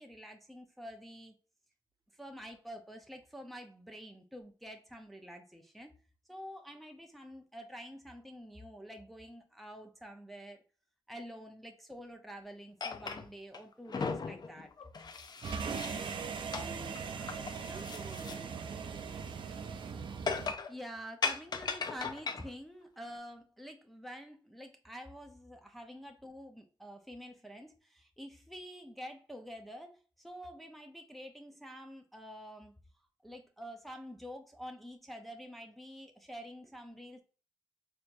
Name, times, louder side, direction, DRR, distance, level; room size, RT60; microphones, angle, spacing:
voice 1, 0.0-1.3 2.1-5.9 6.3-10.6 11.1-14.7 20.7-32.8 33.2-37.2, equal, ahead, 0.6 m, -48 dB
sound 1, 12.8-13.6 13.9-16.2 16.5-16.7 16.9-18.4 18.7-18.8 20.3-20.7 21.2-22.5, left 5 dB, 50° left, 0.5 m, -37 dB
voice 2, 15.4-19.4, right 2 dB, 40° right, 0.8 m, -53 dB
sound 2, 15.4-20.5, right 6 dB, 65° right, 0.5 m, -40 dB
4.2 x 2.8 x 2.5 m
cardioid pair, 60°, 9 cm